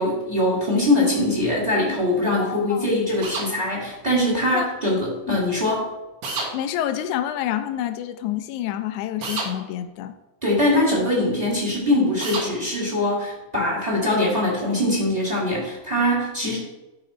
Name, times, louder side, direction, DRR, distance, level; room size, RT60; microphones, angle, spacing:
voice 1, 0.0-5.8 10.4-16.6, left 1 dB, 15° right, -3 dB, 1.9 m, -22 dB
voice 2, 2.4-2.9 4.5-4.7 5.3-5.4 6.5-10.1 16.4-16.6, left 11 dB, 80° left, 8 dB, 1.9 m, -28 dB
sound 1, 3.2-3.5 6.2-6.5 9.2-9.5 12.2-12.5, right 3 dB, 55° right, 2.1 m, -28 dB
11.5 x 4.0 x 4.3 m, 1.0 s
omnidirectional pair, 3.7 m